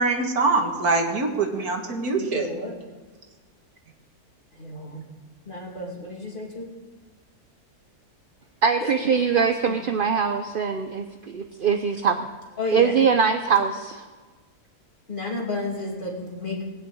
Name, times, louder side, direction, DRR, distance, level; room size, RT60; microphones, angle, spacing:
voice 1, 0.0-2.5, right 3 dB, 70° right, 3 dB, 2.2 m, -23 dB
voice 2, 2.2-2.8 4.5-5.1 5.5-6.7 8.8-8.9 9.7-9.8 12.6-12.9 15.1-16.6, left 2 dB, 30° left, -2 dB, 2.9 m, -32 dB
voice 3, 8.6-12.3 12.7-14.0, right 6 dB, 50° right, 7 dB, 0.7 m, -22 dB
20.0 x 6.6 x 8.9 m, 1.4 s
omnidirectional pair, 1.6 m